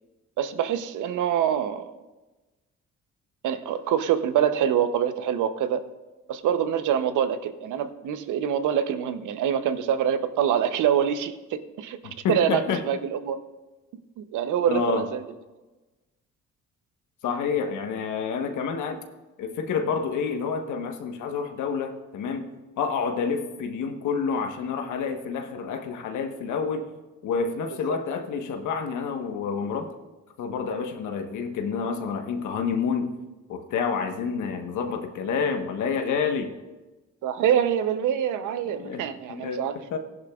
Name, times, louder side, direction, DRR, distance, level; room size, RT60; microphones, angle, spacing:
voice 1, 0.4-2.0 3.4-5.8 6.3-12.0 12.3-13.4 14.2-15.2 27.9-28.0 37.2-39.8, right 9 dB, 80° right, 11 dB, 0.8 m, -25 dB
voice 2, 12.0-12.8 14.7-15.1 17.2-19.0 19.4-22.5 22.8-26.9 27.2-29.9 30.4-33.1 33.5-36.5 38.8-40.0, left 6 dB, 80° left, 5 dB, 1.2 m, -28 dB
15.5 x 11.0 x 2.4 m, 1.2 s
cardioid pair, 90°, 30 cm